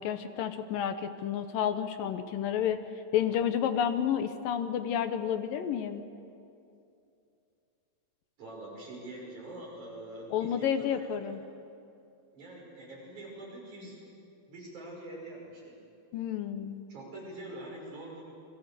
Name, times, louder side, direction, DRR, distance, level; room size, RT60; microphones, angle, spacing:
voice 1, 0.0-2.8 3.1-6.0 10.3-11.4 16.1-16.9, left 9 dB, 70° left, 9 dB, 2.4 m, -30 dB
voice 2, 8.4-11.2 12.3-14.0 14.5-15.7 16.9-18.2, right 1 dB, 50° right, -2 dB, 7.2 m, -44 dB
29.0 x 22.5 x 6.8 m, 2.6 s
omnidirectional pair, 4.4 m